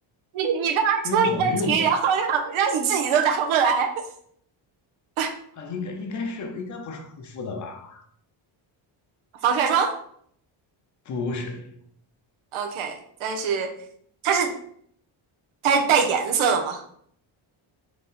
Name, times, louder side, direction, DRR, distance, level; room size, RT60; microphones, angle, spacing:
voice 1, 0.3-3.9 5.2-5.3 9.4-10.0 12.5-13.8 14.2-14.5 15.6-16.8, right 6 dB, 90° right, 0.8 m, -22 dB
voice 2, 1.0-2.0 5.6-8.1 11.1-11.8, left 3 dB, 40° left, 0.5 m, -32 dB
3.8 x 3.0 x 3.9 m
cardioid pair, 180°, 47 cm